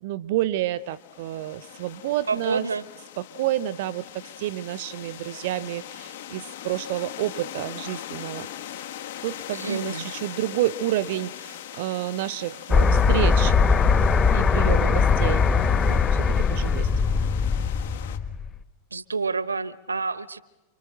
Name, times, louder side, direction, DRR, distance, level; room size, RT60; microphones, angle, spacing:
voice 1, 0.0-2.7 3.2-8.5 9.2-13.6 14.3-15.5 15.8-16.9, right 14 dB, 50° right, 20 dB, 0.8 m, -29 dB
sound 1, 0.8-18.2, left 11 dB, 55° left, 1.7 m, -41 dB
voice 2, 2.3-2.8 9.5-10.1 18.9-20.4, right 4 dB, 75° right, 19 dB, 1.0 m, -28 dB
sound 2, 12.7-18.5, left 5 dB, 25° left, 1.5 m, -20 dB
29.5 x 24.5 x 7.8 m, 1.1 s
figure-of-eight pair, 90°, 0 cm